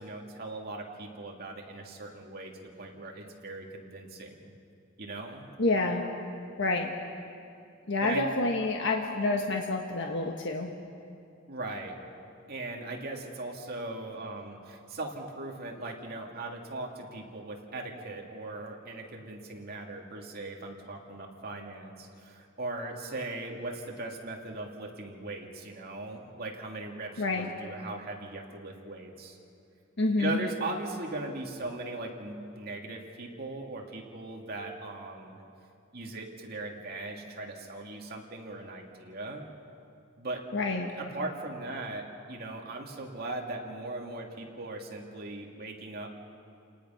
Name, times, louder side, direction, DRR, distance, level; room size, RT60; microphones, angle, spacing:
voice 1, 0.0-4.5 5.0-5.5 8.0-8.3 11.5-11.9 12.5-29.4 30.2-35.4 35.9-39.5 40.2-40.5 41.0-46.1, right 2 dB, 50° right, 0 dB, 2.7 m, -39 dB
voice 2, 5.6-6.1 6.6-6.9 7.9-10.7 27.2-27.5 30.0-30.4 40.5-40.9, left 2 dB, 60° left, 2 dB, 1.4 m, -28 dB
29.5 x 19.0 x 5.8 m, 2.6 s
head